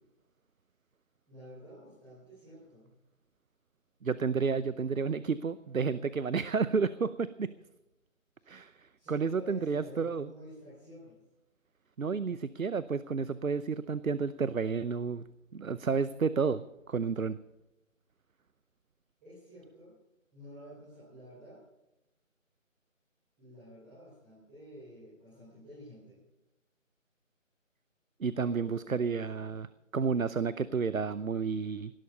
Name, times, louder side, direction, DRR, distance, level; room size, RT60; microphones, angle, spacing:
voice 1, 1.3-2.9 8.4-8.5 9.0-11.2 19.2-19.9 20.3-21.6 23.4-26.2 28.3-29.2, equal, 5° right, -12 dB, 4.6 m, -50 dB
voice 2, 4.0-7.5 8.5-10.3 12.0-15.2 15.5-17.4 28.2-31.9, right 5 dB, 85° right, 16 dB, 0.8 m, -31 dB
18.5 x 12.0 x 5.4 m, 0.91 s
figure-of-eight pair, 165°, 40 cm